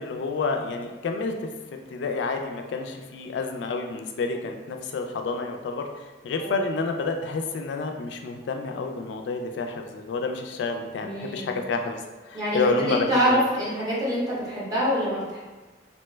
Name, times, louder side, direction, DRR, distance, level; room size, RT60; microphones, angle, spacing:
voice 1, 0.0-1.5 1.9-13.4, left 3 dB, 75° left, 4 dB, 0.3 m, -29 dB
voice 2, 11.0-11.6 12.3-15.4, equal, 20° right, -8 dB, 0.9 m, -25 dB
2.8 x 2.1 x 3.2 m, 1.2 s
head